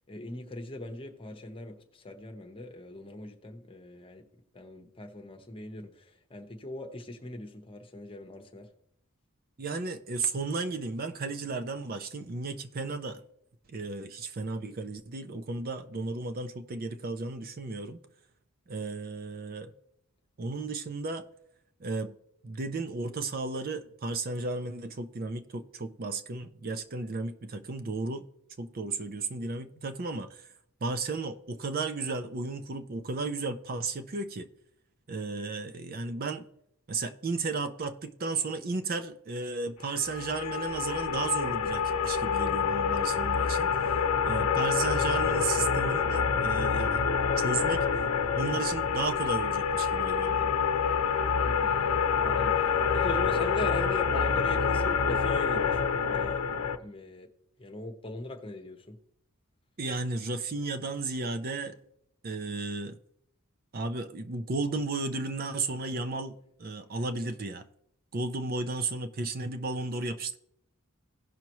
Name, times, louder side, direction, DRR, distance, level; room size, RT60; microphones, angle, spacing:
voice 1, 0.1-4.2 4.5-8.7 51.4-55.8 56.1-57.3 57.6-59.0, left 2 dB, 25° left, 1.0 m, -40 dB
voice 2, 9.6-13.2 13.7-18.0 18.7-19.7 20.4-21.2 21.8-22.1 22.4-28.2 28.6-30.5 30.8-34.5 35.1-36.4 36.9-43.7 44.2-47.1 47.4-47.9 48.3-50.6 59.8-61.8 62.2-63.0 63.7-66.3 66.6-67.6 68.1-70.4, right 3 dB, 40° right, 0.5 m, -34 dB
sound 1, 40.0-56.8, left 6 dB, 80° left, 0.7 m, -27 dB
17.0 x 5.8 x 3.1 m
head